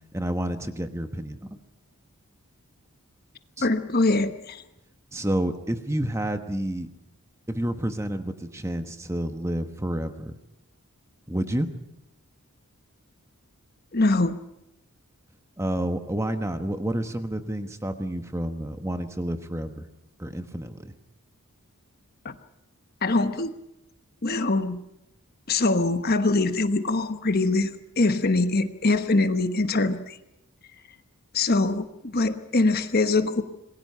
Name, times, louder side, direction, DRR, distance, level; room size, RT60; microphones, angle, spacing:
voice 1, 0.1-1.5 3.6-3.7 5.1-6.9 7.5-10.4 11.3-11.7 15.6-19.8 20.2-20.9, right 1 dB, 15° right, 8 dB, 1.2 m, -29 dB
voice 2, 3.6-4.6 13.9-14.4 22.2-22.4 23.0-23.5 24.2-24.8 25.5-30.2 31.3-33.4, left 2 dB, 45° left, 9 dB, 1.1 m, -23 dB
27.0 x 21.0 x 5.6 m, 0.86 s
head